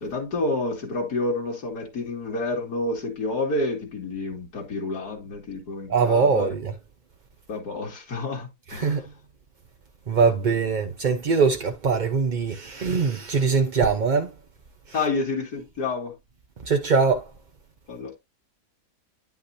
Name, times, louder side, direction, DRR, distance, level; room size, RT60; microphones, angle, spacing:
voice 1, 0.0-6.5 7.5-8.9 14.9-16.2 17.9-18.1, left 2 dB, 90° left, 2.6 m, -29 dB
voice 2, 5.9-6.8 8.7-9.1 10.1-14.3 14.9-15.0 16.6-17.3, right 5 dB, 45° right, 0.6 m, -22 dB
9.8 x 5.7 x 2.7 m
omnidirectional pair, 1.6 m